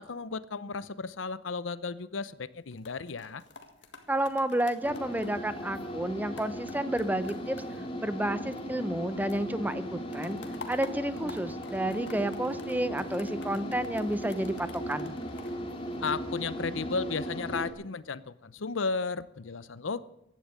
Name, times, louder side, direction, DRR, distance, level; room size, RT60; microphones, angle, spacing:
voice 1, 0.0-3.4 16.0-20.0, left 4 dB, 80° left, 16 dB, 0.7 m, -34 dB
sound 1, 2.5-9.0 9.3-16.5 17.0-17.3, left 4 dB, 65° left, 1.8 m, -51 dB
voice 2, 4.1-7.6 8.0-10.4 10.7-15.1, right 1 dB, 10° right, 12 dB, 0.7 m, -31 dB
sound 2, 4.8-17.7, equal, 30° left, 2.2 m, -37 dB
16.0 x 11.0 x 6.6 m, 0.84 s
head